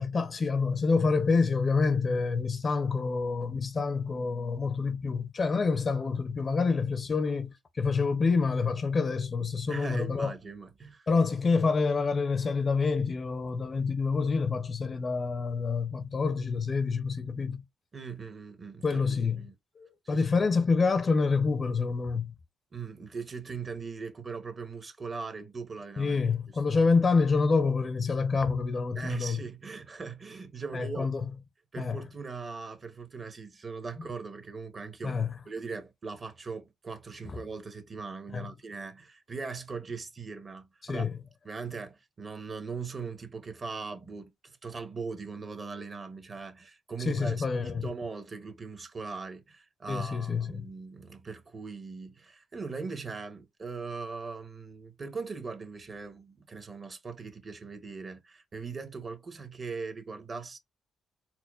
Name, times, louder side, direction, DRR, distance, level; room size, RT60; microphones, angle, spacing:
voice 1, 0.0-10.3 11.1-17.6 18.8-19.4 19.8-22.3 26.0-29.4 30.7-31.3 31.8-32.0 35.0-35.3 38.3-38.5 40.8-41.2 47.0-47.8 49.9-50.6, left 4 dB, 35° left, 0.5 m, -27 dB
voice 2, 9.7-11.1 17.9-19.5 20.0-20.2 22.7-26.2 28.9-31.1 31.7-35.2 35.5-41.1 41.4-60.6, right 4 dB, 35° right, 0.9 m, -40 dB
4.3 x 2.2 x 2.4 m
cardioid pair, 90°, 0 cm